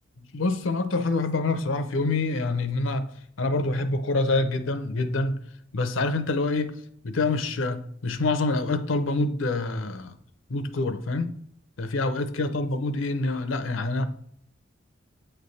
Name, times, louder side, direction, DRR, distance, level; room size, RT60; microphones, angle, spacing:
voice 1, 0.3-3.1 3.4-5.4 5.7-6.7 7.0-10.2 10.5-11.4 11.8-14.1, left 2 dB, 90° left, 0.6 m, -26 dB
8.5 x 3.4 x 4.1 m
head